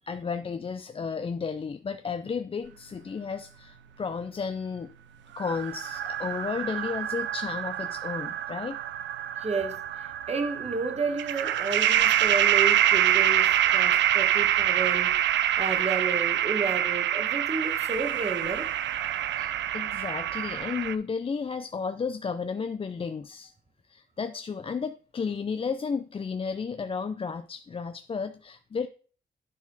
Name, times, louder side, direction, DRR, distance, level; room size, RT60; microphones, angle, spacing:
voice 1, 0.1-4.9 5.4-8.8 19.3-23.5 23.9-28.9, left 5 dB, 30° left, 0.4 m, -33 dB
sound 1, 5.4-21.0, right 11 dB, 80° right, 0.4 m, -26 dB
voice 2, 9.4-15.2 15.6-19.0, right 4 dB, 35° right, 1.3 m, -32 dB
9.6 x 4.2 x 4.0 m
cardioid pair, 95°, 19 cm